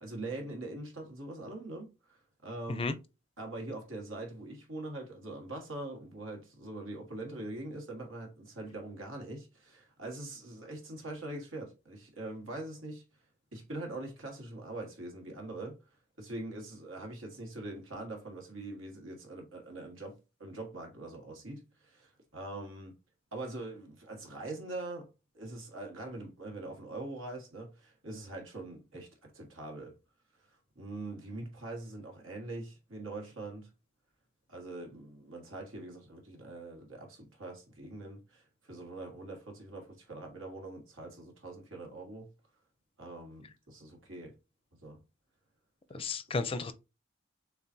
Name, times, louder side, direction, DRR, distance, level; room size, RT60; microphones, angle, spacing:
voice 1, 0.0-2.9 3.4-13.0 13.5-15.8 16.2-23.0 23.3-25.1 25.3-29.9 30.8-33.7 34.5-42.3 43.0-44.3 44.8-45.0 45.9-46.1, right 2 dB, 85° right, 1.6 m, -43 dB
voice 2, 45.9-46.7, left 3 dB, 30° left, 0.4 m, -33 dB
6.8 x 2.4 x 2.7 m
head